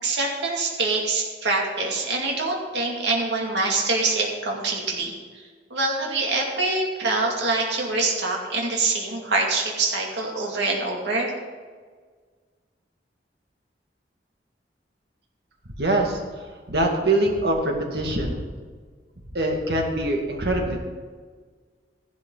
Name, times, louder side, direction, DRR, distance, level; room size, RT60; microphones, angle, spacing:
voice 1, 0.0-5.4 5.7-11.3, right 3 dB, 85° right, -1 dB, 2.6 m, -25 dB
voice 2, 15.8-16.2 16.7-18.5 19.3-20.8, right 1 dB, 65° right, 1 dB, 2.2 m, -23 dB
14.5 x 12.0 x 4.0 m, 1.6 s
head